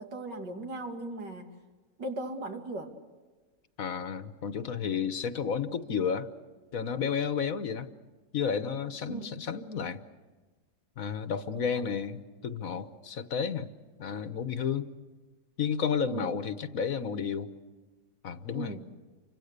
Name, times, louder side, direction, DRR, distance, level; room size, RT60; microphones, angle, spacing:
voice 1, 0.0-1.5 2.0-2.9 9.1-9.3 11.7-11.8 16.0-16.3 18.5-18.9, right 2 dB, 90° right, 4 dB, 3.1 m, -38 dB
voice 2, 3.8-6.3 6.7-7.9 8.3-10.0 11.0-13.7 14.0-14.9 15.6-17.5 18.2-18.8, left 6 dB, 55° left, 11 dB, 1.4 m, -32 dB
29.5 x 25.5 x 6.7 m, 1.3 s
omnidirectional pair, 1.8 m